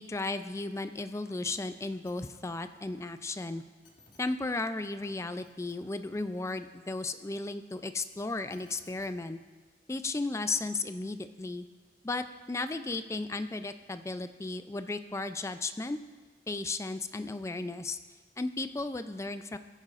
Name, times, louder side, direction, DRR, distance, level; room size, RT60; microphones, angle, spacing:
voice 1, 0.0-3.6 4.2-9.4 9.9-11.7 12.0-16.0 16.5-18.0 18.4-19.6, left 3 dB, 15° left, 10 dB, 0.3 m, -35 dB
sound 1, 1.5-1.6 1.9-2.4 3.5-3.6 3.8-4.2 4.8-5.1 5.4-6.5 7.9-9.1 10.1-10.2, left 3 dB, 45° left, 1.8 m, -61 dB
18.0 x 9.7 x 2.5 m, 1.4 s
head